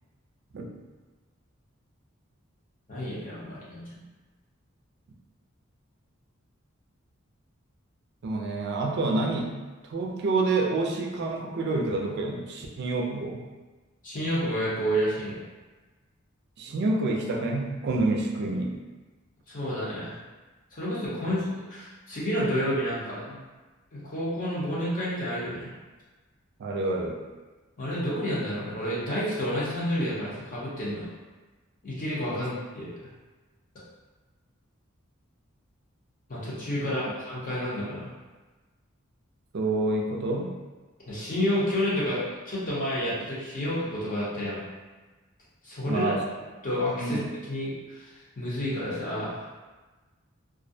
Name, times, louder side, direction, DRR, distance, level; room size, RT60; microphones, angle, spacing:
voice 1, 2.9-4.0 14.0-15.4 19.5-20.1 20.7-23.4 23.9-25.7 27.8-31.1 31.8-32.9 36.3-38.1 41.1-44.6 45.6-46.1 46.6-47.2 47.5-48.1 48.4-49.5, equal, 40° left, -8 dB, 0.7 m, -30 dB
voice 2, 8.2-9.6 9.8-13.4 16.6-18.8 26.6-27.2 32.3-32.4 36.8-36.9 39.5-40.5 45.9-46.2 47.0-47.3, right 2 dB, 55° right, 0 dB, 0.4 m, -28 dB
2.3 x 2.0 x 2.6 m, 1.2 s
head